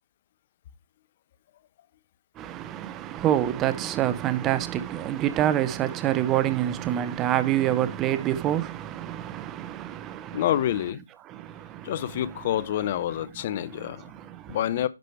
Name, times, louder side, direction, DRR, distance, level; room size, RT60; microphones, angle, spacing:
voice 1, 2.4-10.5 11.3-12.2 13.6-14.6, right 12 dB, 20° right, 0.8 m, -27 dB
voice 2, 10.3-11.0 11.8-14.0 14.5-14.9, left 12 dB, 40° left, 0.7 m, -27 dB
10.5 x 5.1 x 4.5 m
figure-of-eight pair, 140°, 0 cm